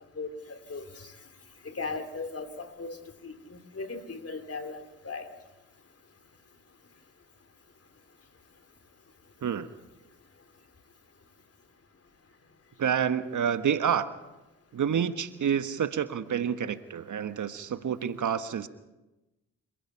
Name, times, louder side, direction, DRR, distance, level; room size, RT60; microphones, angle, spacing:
voice 1, 0.2-1.1 1.6-3.0 3.2-5.3, left 3 dB, 40° left, 9 dB, 3.2 m, -38 dB
voice 2, 12.8-14.1 14.7-18.7, right 8 dB, 55° right, 11 dB, 1.3 m, -28 dB
29.0 x 16.0 x 5.7 m, 1.0 s
hypercardioid pair, 40°, 35 cm